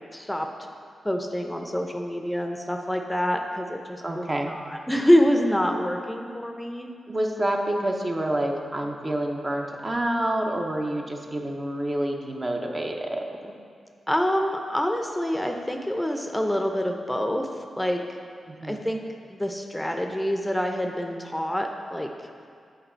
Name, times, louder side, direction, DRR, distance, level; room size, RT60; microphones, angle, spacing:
voice 1, 0.1-0.5 1.0-6.9 14.1-17.5 17.8-18.0 18.6-19.0 19.3-22.1, equal, 10° left, 3 dB, 0.5 m, -26 dB
voice 2, 4.0-4.5 7.1-13.5 18.5-18.8, right 1 dB, 35° right, 1 dB, 0.7 m, -28 dB
7.9 x 3.7 x 4.4 m, 2.2 s
supercardioid pair, 45°, 0 cm